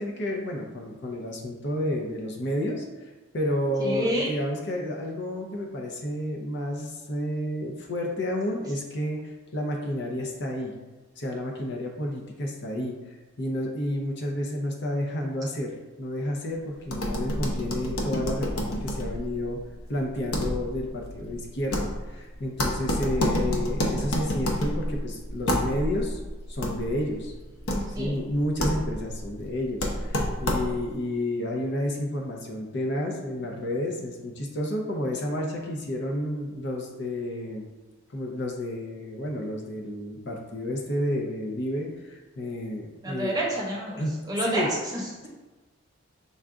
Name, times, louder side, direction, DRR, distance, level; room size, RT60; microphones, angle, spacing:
voice 1, 0.0-2.8 3.3-9.2 9.5-10.7 11.2-12.9 13.4-19.6 19.9-26.2 26.5-27.3 28.0-37.7 38.1-43.4 44.0-44.1 44.4-44.7, left 1 dB, 55° left, 1 dB, 0.7 m, -30 dB
voice 2, 3.8-4.3 27.7-28.2 43.0-45.3, right 1 dB, 20° right, -4 dB, 0.9 m, -29 dB
sound 1, 16.8-31.0, equal, 85° left, 0.8 m, -30 dB
5.5 x 2.4 x 3.7 m, 1.2 s
head